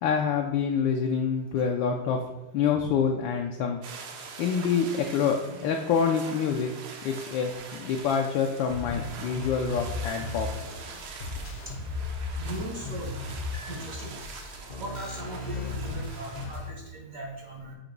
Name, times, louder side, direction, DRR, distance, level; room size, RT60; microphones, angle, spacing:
voice 1, 0.0-2.2 2.5-3.8 4.4-6.7 7.0-10.5, left 6 dB, 75° left, 2 dB, 1.2 m, -26 dB
sound 1, 3.8-16.5, right 5 dB, 80° right, 1.7 m, -44 dB
sound 2, 8.7-16.7, left 3 dB, 55° left, 0.5 m, -36 dB
voice 2, 12.4-13.2 13.7-14.2 14.8-17.7, right 1 dB, 55° right, 0 dB, 1.0 m, -39 dB
7.0 x 3.0 x 5.2 m, 1.0 s
omnidirectional pair, 2.4 m